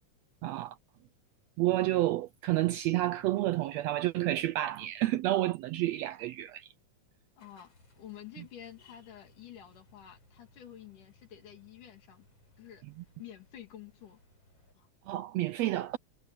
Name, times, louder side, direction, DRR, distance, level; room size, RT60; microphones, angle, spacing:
voice 1, 0.4-0.7 1.6-6.7 15.1-16.0, right 15 dB, 85° right, 1.5 m, -30 dB
voice 2, 7.4-12.3 12.6-12.8 13.2-14.2 14.7-14.9, left 10 dB, 90° left, 4.2 m, -50 dB
sound 1, 7.4-14.7, left 2 dB, 50° left, 9.3 m, -64 dB
omnidirectional pair, 3.5 m